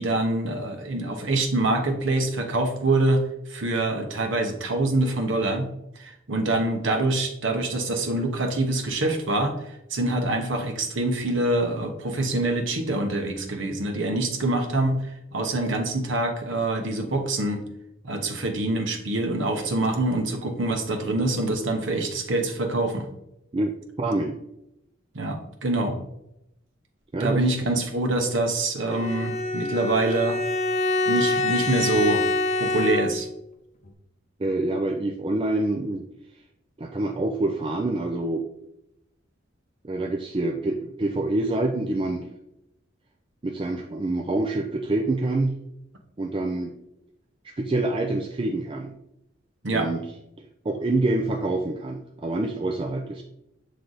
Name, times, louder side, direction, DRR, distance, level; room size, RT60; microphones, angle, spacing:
voice 1, 0.0-3.2 3.5-5.7 6.0-9.5 9.9-15.0 15.3-17.6 18.0-23.1 25.1-26.0 27.2-30.4 31.1-32.2 32.6-33.3 49.6-49.9, right 2 dB, 70° right, 4 dB, 1.0 m, -25 dB
voice 2, 24.0-24.4 27.1-27.4 34.4-36.0 36.8-38.4 39.8-42.3 43.4-45.6 46.2-46.7 47.4-48.9 49.7-50.0 50.4-53.2, right 2 dB, 25° right, 2 dB, 0.4 m, -26 dB
Bowed string instrument, 28.9-33.4, left 2 dB, 35° left, 0.6 m, -25 dB
7.5 x 3.3 x 3.9 m, 0.83 s
head